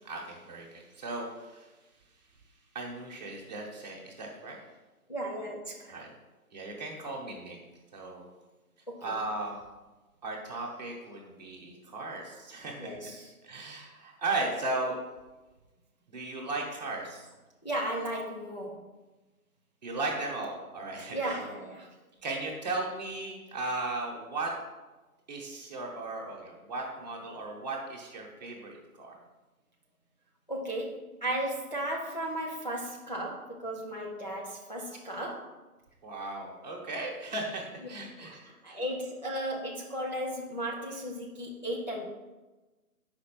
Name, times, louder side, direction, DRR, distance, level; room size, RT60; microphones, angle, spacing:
voice 1, 0.0-1.7 2.7-4.6 5.9-6.1 6.5-7.6 7.9-8.2 9.0-9.6 10.2-12.9 13.4-15.0 16.1-17.3 19.8-21.4 22.2-24.5 25.3-29.1 36.0-38.8, right 2 dB, 30° right, -1 dB, 1.1 m, -36 dB
voice 2, 5.1-5.9 8.9-9.1 12.8-13.3 17.6-18.8 21.1-21.9 30.5-31.0 31.2-35.5 38.2-38.4 38.6-42.1, right 1 dB, 30° left, -3 dB, 0.5 m, -35 dB
6.4 x 5.1 x 4.5 m, 1.2 s
figure-of-eight pair, 155°, 46 cm